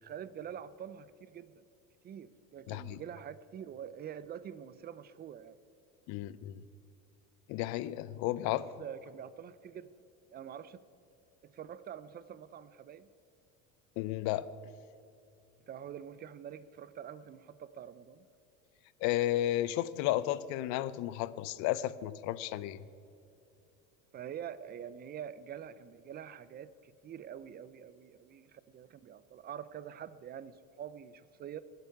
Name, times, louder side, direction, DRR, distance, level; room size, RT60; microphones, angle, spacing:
voice 1, 0.0-1.6 2.0-5.6 8.8-9.9 10.3-10.8 11.4-13.1 15.7-18.3 24.1-31.6, right 9 dB, 30° right, 16 dB, 0.5 m, -46 dB
voice 2, 2.7-3.0 6.1-6.6 7.5-8.6 14.0-14.5 19.0-22.9, left 14 dB, 65° left, 17 dB, 0.6 m, -33 dB
22.0 x 8.0 x 4.7 m, 2.7 s
supercardioid pair, 125°, 31 cm